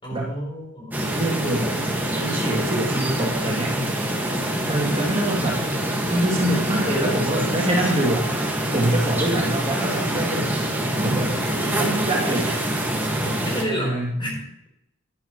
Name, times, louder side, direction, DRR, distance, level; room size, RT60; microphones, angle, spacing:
voice 1, 0.0-1.0 13.1-14.7, equal, 25° left, -1 dB, 3.9 m, -31 dB
sound 1, 0.9-13.6, right 1 dB, 10° right, 1.7 m, -25 dB
voice 2, 1.1-1.8 2.2-3.8 4.7-5.6 6.1-8.3 8.7-10.5 11.0-12.6 13.6-14.2, right 1 dB, 30° right, -3 dB, 2.6 m, -25 dB
12.0 x 11.0 x 3.1 m, 0.79 s
head